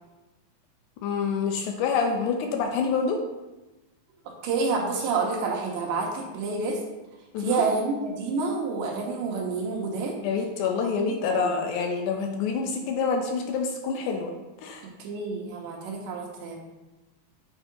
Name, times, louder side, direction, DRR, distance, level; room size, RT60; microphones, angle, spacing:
voice 1, 1.0-3.2 7.3-7.6 10.2-14.3 14.6-14.9, left 5 dB, 80° left, 3 dB, 1.9 m, -27 dB
voice 2, 4.4-6.8 7.4-10.1 11.0-11.6 15.0-16.6, right 4 dB, 85° right, -1 dB, 2.4 m, -28 dB
7.2 x 2.8 x 4.9 m, 1.1 s
omnidirectional pair, 3.9 m